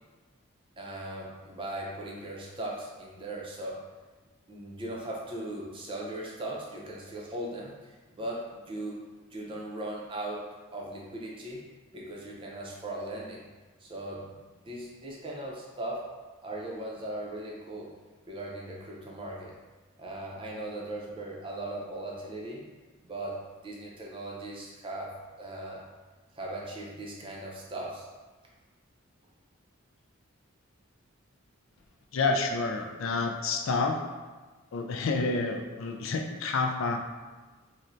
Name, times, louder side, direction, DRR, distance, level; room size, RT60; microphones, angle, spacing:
voice 1, 0.8-3.8 4.5-7.7 8.1-9.0 9.3-10.5 10.7-11.6 11.9-13.4 13.8-16.1 16.4-17.9 18.3-19.6 20.0-22.6 23.0-25.8 26.3-28.1, right 1 dB, 25° right, -3 dB, 0.5 m, -38 dB
voice 2, 32.1-34.0 34.7-37.0, left 3 dB, 70° left, 4 dB, 0.4 m, -29 dB
4.2 x 2.1 x 2.5 m, 1.3 s
head